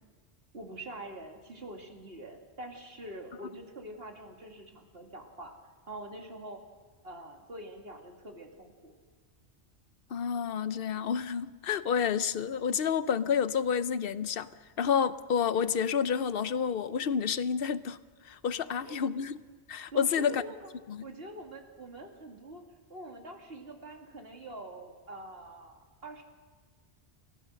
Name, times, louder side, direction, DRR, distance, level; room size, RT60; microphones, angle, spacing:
voice 1, 0.5-5.6 5.9-6.6 7.0-8.9 18.6-19.0 19.9-20.7 21.0-22.6 22.9-26.2, right 1 dB, 60° right, 2.6 m, -45 dB
voice 2, 10.1-14.5 14.8-18.0 18.3-19.4 19.7-20.4 20.9-21.0, left 7 dB, 60° left, 0.9 m, -29 dB
29.5 x 15.0 x 6.4 m
omnidirectional pair, 1.1 m